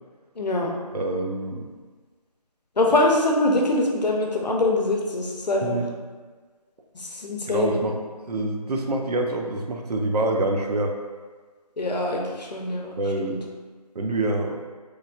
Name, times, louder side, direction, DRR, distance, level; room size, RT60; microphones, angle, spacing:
voice 1, 0.4-0.8 2.8-5.8 6.9-7.8 11.8-13.4, left 2 dB, 85° left, 0 dB, 0.6 m, -24 dB
voice 2, 0.9-1.7 5.6-5.9 7.5-8.0 8.3-11.0 13.0-13.4 14.0-14.6, right 2 dB, 70° right, 3 dB, 0.4 m, -26 dB
3.2 x 2.2 x 2.4 m, 1.4 s
figure-of-eight pair, 165°, 21 cm